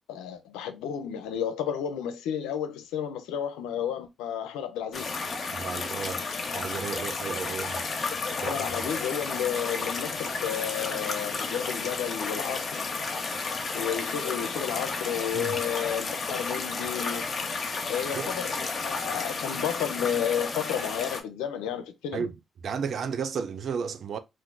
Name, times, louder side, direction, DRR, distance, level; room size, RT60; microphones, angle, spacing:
voice 1, 0.1-5.1 7.5-7.6 8.4-12.9 13.7-17.3 17.9-22.3, left 9 dB, 90° left, 0.5 m, -32 dB
sound 1, 4.9-21.2, left 4 dB, 50° left, 0.8 m, -32 dB
voice 2, 5.5-6.2 6.5-7.8 8.4-8.7 15.3-15.6 18.1-18.3 22.1-22.3 22.6-24.2, right 6 dB, 65° right, 0.5 m, -33 dB
2.5 x 2.3 x 3.6 m
supercardioid pair, 55°, 0 cm